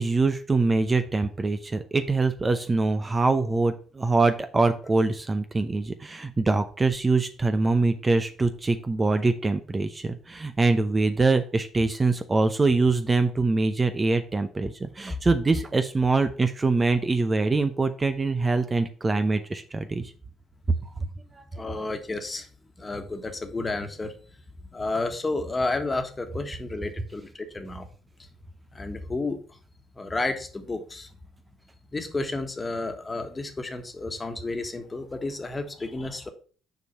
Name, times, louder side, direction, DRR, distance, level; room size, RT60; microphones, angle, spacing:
voice 1, 0.0-20.1, right 3 dB, 25° right, 0.8 m, -24 dB
voice 2, 21.5-22.5 22.8-24.1 24.7-27.9 28.7-29.6 29.9-31.1 31.9-36.3, left 2 dB, 25° left, 1.5 m, -31 dB
6.7 x 4.7 x 5.5 m
supercardioid pair, 65°, 0 cm